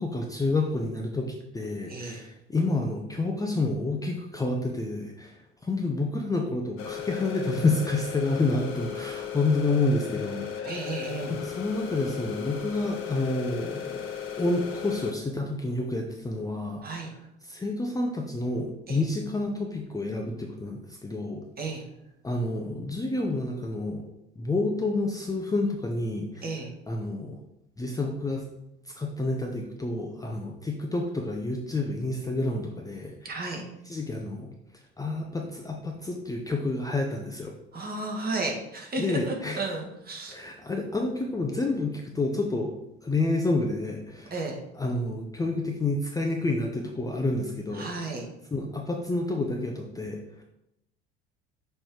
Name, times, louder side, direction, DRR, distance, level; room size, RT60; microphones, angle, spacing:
voice 1, 0.0-10.5 11.4-14.0 14.4-17.2 17.4-21.4 22.2-24.0 24.4-26.4 26.9-27.4 27.8-28.5 29.0-33.4 33.9-34.5 35.0-37.5 39.0-39.6 40.3-42.7 43.0-44.4 44.8-47.9 48.5-50.4, left 2 dB, 10° left, 1 dB, 0.6 m, -29 dB
voice 2, 1.9-2.2 10.6-11.3 16.8-17.1 18.9-19.0 21.6-21.8 26.4-26.7 33.2-33.6 37.7-40.4 44.3-44.6 47.7-48.2, right 2 dB, 30° right, 1 dB, 1.5 m, -33 dB
sound 1, 6.8-15.1, left 8 dB, 45° left, 0.9 m, -36 dB
6.2 x 3.2 x 4.7 m, 0.85 s
figure-of-eight pair, 60°, 32 cm